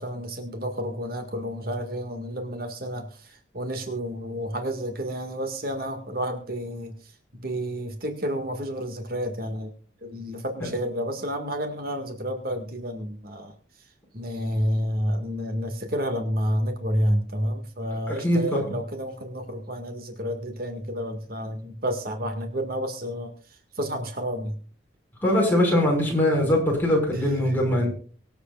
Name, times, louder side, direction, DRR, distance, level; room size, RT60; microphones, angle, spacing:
voice 1, 0.0-6.9 7.3-9.7 10.0-13.5 14.1-23.3 23.8-24.6 27.4-27.5, equal, 50° right, 5 dB, 1.9 m, -30 dB
voice 2, 18.1-18.7 25.2-27.9, left 1 dB, 10° left, -1 dB, 5.6 m, -22 dB
24.5 x 8.2 x 2.4 m, 0.41 s
head